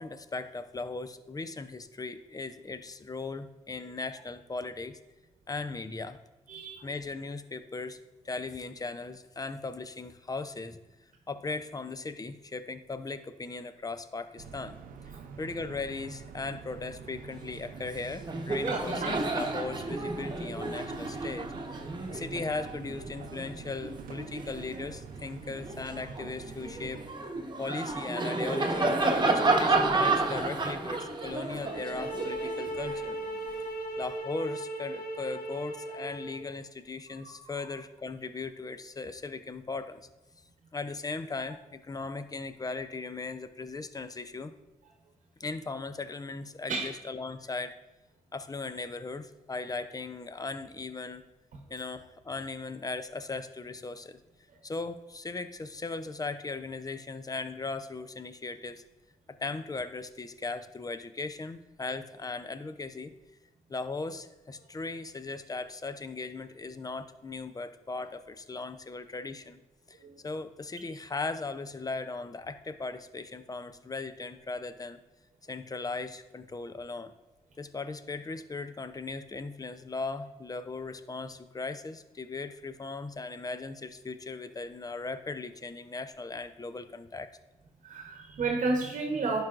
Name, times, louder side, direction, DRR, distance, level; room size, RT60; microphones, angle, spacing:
voice 1, 0.0-5.0 5.5-6.2 6.8-8.0 8.2-10.8 11.3-14.8 15.4-21.5 22.1-27.0 27.6-29.0 29.2-33.2 34.0-40.0 40.7-44.5 45.4-47.7 48.3-51.2 51.7-54.2 54.6-58.8 59.3-63.1 63.7-69.6 69.9-70.0 70.2-75.0 75.5-77.1 77.6-87.4, left 3 dB, 25° left, 11 dB, 0.5 m, -38 dB
voice 2, 6.5-6.9 18.7-19.1 37.2-37.4 46.7-46.9 70.0-70.2 87.8-89.4, right 3 dB, 65° right, 2 dB, 1.0 m, -32 dB
sound 1, 14.4-27.1, right 6 dB, 80° right, 0.6 m, -46 dB
Laughter, 17.7-17.9 18.2-24.9 25.4-33.6, right 3 dB, 30° right, 1.1 m, -31 dB
sound 2, 31.5-36.4, right 2 dB, 85° left, 0.9 m, -37 dB
11.5 x 4.8 x 2.5 m, 1.0 s
supercardioid pair, 55°, 14 cm